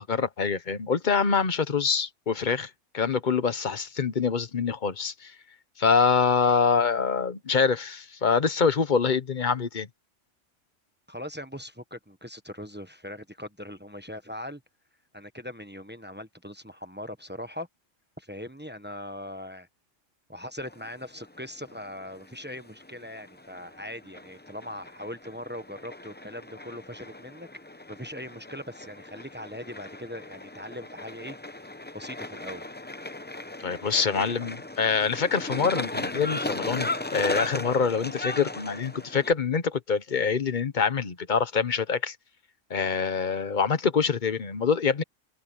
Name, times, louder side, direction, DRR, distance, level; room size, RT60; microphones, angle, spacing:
voice 1, 0.0-5.3 5.8-9.9 33.6-42.2 42.7-45.0, left 5 dB, 40° left, 1.1 m, -25 dB
voice 2, 11.1-14.6 15.1-17.7 18.2-19.7 20.3-27.5 27.9-31.4 31.9-32.6, left 1 dB, 10° right, 1.1 m, -40 dB
sound 1, 20.6-39.3, left 2 dB, 10° left, 0.6 m, -37 dB
omnidirectional pair, 1.3 m